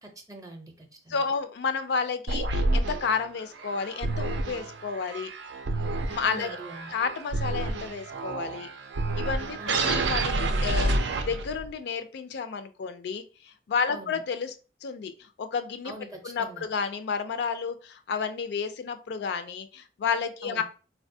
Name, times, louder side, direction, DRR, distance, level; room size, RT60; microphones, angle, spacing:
voice 1, 0.0-1.2 6.2-6.9 9.6-10.1 13.9-14.2 15.8-16.7 20.4-20.6, right 1 dB, 20° right, 4 dB, 0.5 m, -44 dB
voice 2, 1.1-5.3 6.1-6.5 6.9-8.7 9.1-14.5 14.8-15.9 16.2-20.6, left 5 dB, 65° left, 9 dB, 0.4 m, -31 dB
sound 1, 2.3-11.7, right 2 dB, 85° right, 0.4 m, -29 dB
4.0 x 2.2 x 2.6 m, 0.35 s
head